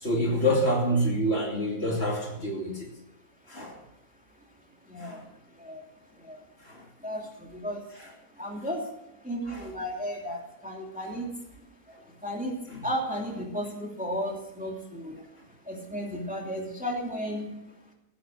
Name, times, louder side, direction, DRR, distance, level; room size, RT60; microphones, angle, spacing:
voice 1, 0.0-2.9 3.5-3.8 5.0-5.2 6.7-6.8 9.5-9.6 12.7-12.8, equal, 40° left, -1 dB, 3.1 m, -27 dB
voice 2, 4.8-5.3 5.5-5.9 6.2-6.4 7.0-8.9 9.2-11.3 12.1-15.2 15.6-17.5, equal, 5° right, 0 dB, 2.8 m, -34 dB
16.0 x 11.0 x 6.5 m, 0.88 s
omnidirectional pair, 1.6 m